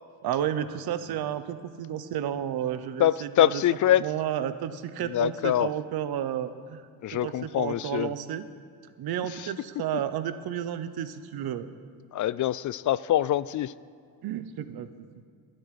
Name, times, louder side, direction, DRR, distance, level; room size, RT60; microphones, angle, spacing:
voice 1, 0.2-3.6 3.9-6.8 7.1-8.5 9.0-11.7 14.2-14.9, right 10 dB, 75° right, 12 dB, 1.0 m, -32 dB
voice 2, 3.0-4.1 5.1-5.7 7.0-8.1 9.4-9.5 12.1-13.7, left 12 dB, 50° left, 18 dB, 0.4 m, -24 dB
12.5 x 7.9 x 10.0 m, 2.2 s
cardioid pair, 105°, 38 cm